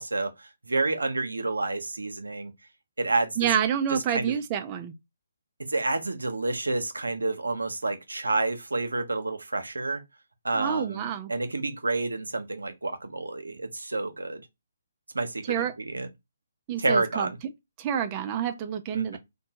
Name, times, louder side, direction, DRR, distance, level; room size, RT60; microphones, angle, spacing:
voice 1, 0.0-2.5 3.0-3.5 3.9-4.3 5.7-10.0 10.4-14.5 15.1-16.1 16.8-17.4 18.9-19.2, right 3 dB, 85° right, 0.6 m, -29 dB
voice 2, 3.4-4.9 10.5-11.3 15.5-15.7 16.7-17.3 17.8-19.2, right 9 dB, 30° right, 0.4 m, -28 dB
2.6 x 2.1 x 2.9 m
figure-of-eight pair, 145°, 0 cm